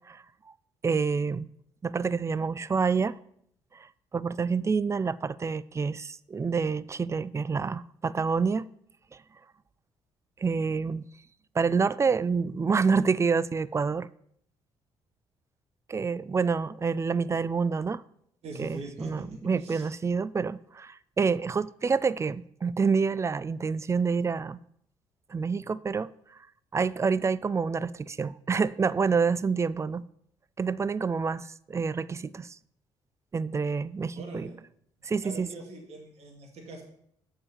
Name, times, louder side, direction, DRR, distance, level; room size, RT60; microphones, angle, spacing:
voice 1, 0.8-1.5 1.8-3.2 4.1-8.7 10.4-11.0 11.6-14.1 15.9-18.0 18.6-24.6 25.3-26.1 26.7-30.0 30.6-32.6 33.3-34.5 35.0-35.5, right 5 dB, 25° right, 0.4 m, -27 dB
voice 2, 18.4-19.9 34.1-34.6 35.2-36.8, right 2 dB, 65° right, 2.3 m, -42 dB
7.0 x 4.9 x 6.9 m
supercardioid pair, 65°, 11 cm